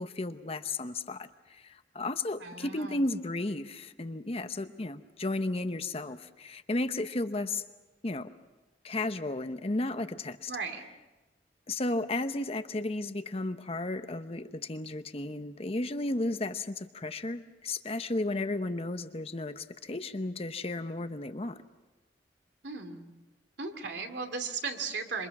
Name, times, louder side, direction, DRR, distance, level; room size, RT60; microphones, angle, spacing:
voice 1, 0.0-7.6 8.0-8.3 8.8-10.5 11.7-21.6, left 2 dB, 35° left, 10 dB, 0.8 m, -34 dB
voice 2, 2.4-3.0 10.5-10.9 22.6-23.1 23.6-25.3, right 4 dB, 75° right, 5 dB, 2.5 m, -36 dB
27.5 x 24.5 x 6.0 m, 1.1 s
head